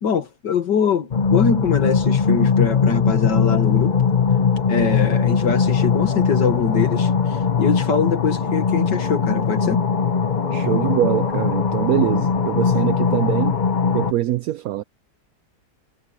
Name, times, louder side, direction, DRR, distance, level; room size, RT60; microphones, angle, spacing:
voice 1, 0.0-4.0 4.7-9.8, left 6 dB, 70° left, 2.2 m, -23 dB
sound 1, 1.1-14.1, left 6 dB, 35° left, 0.8 m, -20 dB
voice 2, 10.5-13.6 13.9-14.8, right 13 dB, 70° right, 0.8 m, -23 dB
omnidirectional pair, 2.0 m